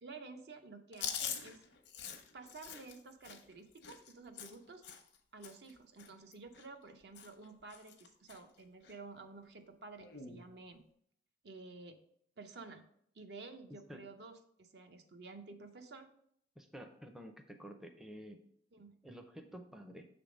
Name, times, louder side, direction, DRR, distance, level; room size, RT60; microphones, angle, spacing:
voice 1, 0.0-1.6 2.3-4.8 5.3-10.8 11.4-12.0 12.4-12.8 13.1-16.1 18.7-18.9, right 3 dB, 65° right, 7 dB, 0.6 m, -52 dB
Chewing mastication, 0.9-5.2 5.4-5.7 6.0-6.9 7.1-7.5 7.7-8.4 8.8-9.0 10.0-10.4, left 8 dB, 80° left, 0.8 m, -44 dB
voice 2, 16.6-18.4 19.0-20.1, equal, 5° right, 5 dB, 0.4 m, -50 dB
6.7 x 3.4 x 5.0 m, 0.68 s
head